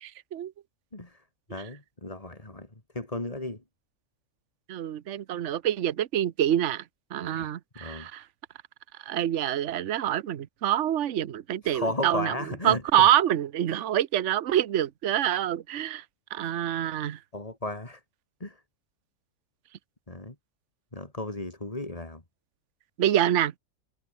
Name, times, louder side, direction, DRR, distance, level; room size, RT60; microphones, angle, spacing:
voice 1, 1.5-2.7 2.9-3.6 7.2-7.5 7.8-8.1 11.6-12.8 16.4-16.5 17.3-18.0 18.4-18.5 20.1-20.3 20.9-22.2, left 2 dB, 25° left, 3.0 m, -34 dB
voice 2, 4.7-6.8 7.1-8.2 9.1-12.3 12.6-16.0 16.3-17.2 23.0-23.5, right 11 dB, 60° right, 1.1 m, -26 dB
omnidirectional pair, 1.5 m